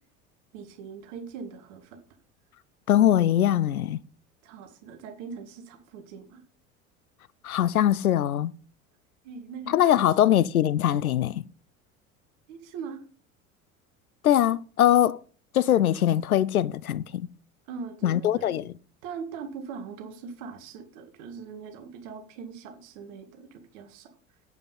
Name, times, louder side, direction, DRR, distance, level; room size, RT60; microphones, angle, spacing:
voice 1, 0.5-2.0 4.4-6.4 9.2-10.0 12.5-13.0 17.7-18.6 19.0-24.1, right 6 dB, 60° right, 2.1 m, -41 dB
voice 2, 2.9-4.0 7.4-8.5 9.7-11.4 14.2-15.2 15.5-17.3 18.0-18.7, left 11 dB, 80° left, 0.6 m, -22 dB
9.3 x 8.1 x 5.4 m
figure-of-eight pair, 70°, 42 cm